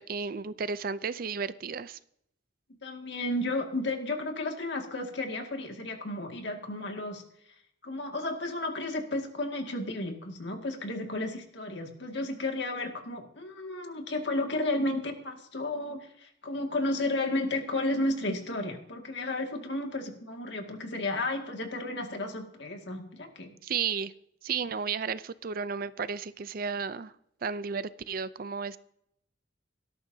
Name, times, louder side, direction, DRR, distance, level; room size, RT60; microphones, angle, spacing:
voice 1, 0.0-2.0 23.6-24.1 24.4-27.1 27.4-28.8, right 6 dB, 50° right, 15 dB, 0.5 m, -33 dB
voice 2, 2.8-7.2 7.8-23.5, left 2 dB, 60° left, 3 dB, 2.1 m, -33 dB
17.5 x 13.5 x 2.8 m, 0.72 s
head